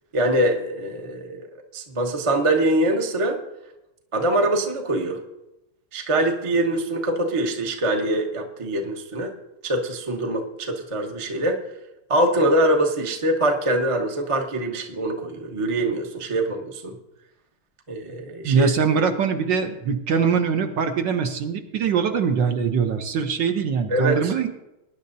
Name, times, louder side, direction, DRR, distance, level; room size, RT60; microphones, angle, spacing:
voice 1, 0.1-1.5 1.7-3.4 4.1-5.2 5.9-9.3 9.6-11.6 12.1-16.9 17.9-18.7 23.9-24.3, right 1 dB, 25° right, 2 dB, 0.6 m, -23 dB
voice 2, 18.4-24.5, right 6 dB, 65° right, 6 dB, 1.3 m, -22 dB
20.0 x 10.0 x 2.7 m, 0.93 s
omnidirectional pair, 2.4 m